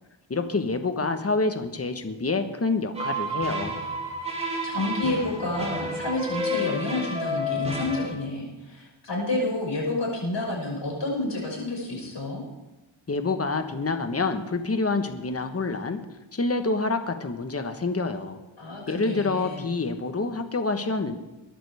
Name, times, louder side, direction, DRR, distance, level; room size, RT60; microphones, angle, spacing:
voice 1, 0.3-3.7 13.1-16.0 16.3-18.4 18.9-21.2, left 3 dB, 30° left, 7 dB, 1.4 m, -27 dB
sound 1, 2.9-8.1, equal, 10° right, 3.6 m, -30 dB
voice 2, 4.6-12.4 18.6-19.6, left 2 dB, 55° left, -3 dB, 6.3 m, -29 dB
22.0 x 11.0 x 3.6 m, 1.0 s
wide cardioid pair, 85°, 49 cm